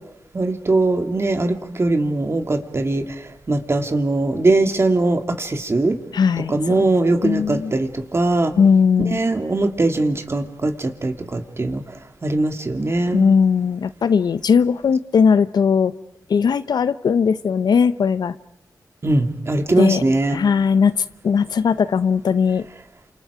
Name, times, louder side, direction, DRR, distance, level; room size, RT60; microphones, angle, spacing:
voice 1, 0.3-3.0 3.5-6.0 6.5-8.5 9.1-11.8 12.2-13.2 19.0-20.4, right 2 dB, 40° right, 5 dB, 2.5 m, -20 dB
voice 2, 6.1-6.8 7.2-7.7 8.5-9.2 13.1-15.9 16.3-18.4 19.8-20.0 20.3-22.6, left 6 dB, 75° left, 14 dB, 0.8 m, -18 dB
29.5 x 27.5 x 5.0 m, 0.80 s
cardioid pair, 70°, 7 cm